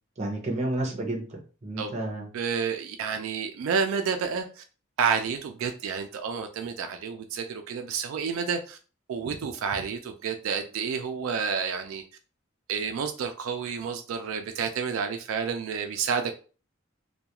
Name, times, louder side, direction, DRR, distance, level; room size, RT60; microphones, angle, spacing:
voice 1, 0.2-2.3, right 1 dB, 35° right, 0.6 m, -31 dB
voice 2, 2.3-4.6 5.0-8.8 9.1-12.0 12.7-16.3, right 6 dB, 75° right, 0.3 m, -30 dB
2.3 x 2.2 x 2.8 m
head